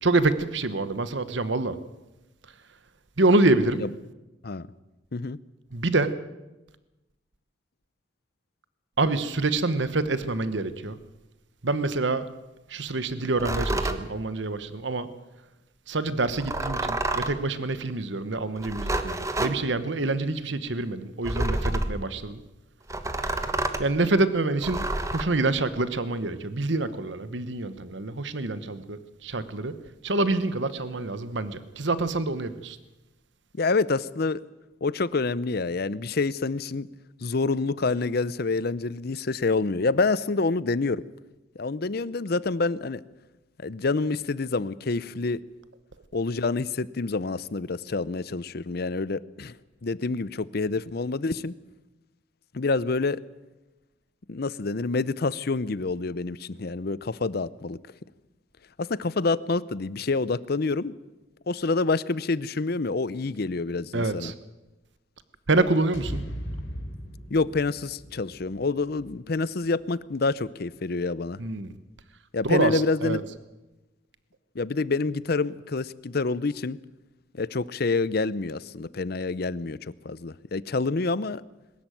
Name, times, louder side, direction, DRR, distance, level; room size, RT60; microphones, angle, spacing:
voice 1, 0.0-1.8 3.2-3.8 5.7-6.1 9.0-11.0 11.6-12.3 12.7-15.1 15.9-22.4 23.8-29.8 30.0-32.8 63.9-64.3 65.5-66.2 71.4-71.7 72.4-73.2, right 2 dB, 65° right, 13 dB, 1.1 m, -26 dB
sound 1, 13.4-14.0 16.3-17.4 18.6-19.6 21.2-22.0 22.9-23.9 24.6-25.2, right 2 dB, 15° right, 1.2 m, -28 dB
voice 2, 33.6-34.4 34.8-36.9 37.2-41.0 41.6-43.0 43.6-45.4 46.1-49.6 49.8-51.5 52.5-53.2 54.3-57.8 58.8-60.9 61.5-64.3 67.3-71.4 72.3-73.2 74.5-76.8 77.3-81.4, left 3 dB, 55° left, 19 dB, 0.6 m, -27 dB
sound 2, 65.9-70.1, equal, 85° left, 5.2 m, -39 dB
21.5 x 13.5 x 9.1 m, 1.0 s
head